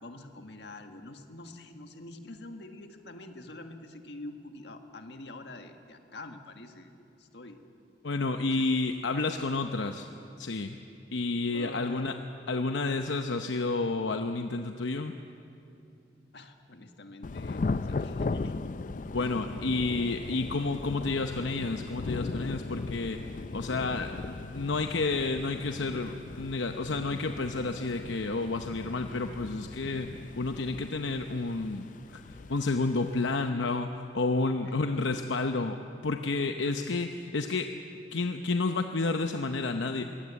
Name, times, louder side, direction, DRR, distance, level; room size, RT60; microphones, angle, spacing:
voice 1, 0.0-6.9 7.2-7.6 8.4-8.7 11.5-12.2 16.3-18.7 19.2-19.8 34.7-35.0 36.4-36.8, left 2 dB, 70° left, 6 dB, 1.6 m, -46 dB
voice 2, 8.0-10.1 10.4-10.8 11.1-12.1 12.5-15.1 19.1-23.2 23.5-32.2 32.5-35.8 36.0-37.7 38.1-40.0, left 3 dB, 85° left, 6 dB, 0.8 m, -30 dB
Thunder / Rain, 17.2-33.5, left 3 dB, 45° left, 0.4 m, -38 dB
22.0 x 17.5 x 8.3 m, 2.6 s
head